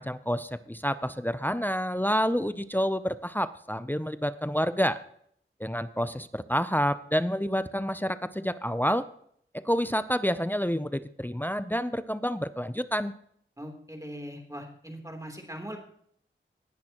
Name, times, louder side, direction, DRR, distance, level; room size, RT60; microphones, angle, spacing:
voice 1, 0.0-5.0 5.6-9.0 9.5-13.1, equal, 10° left, 12 dB, 0.6 m, -28 dB
voice 2, 13.6-15.8, equal, 15° right, 2 dB, 3.4 m, -40 dB
18.5 x 10.5 x 3.0 m, 0.65 s
wide cardioid pair, 45°, 21 cm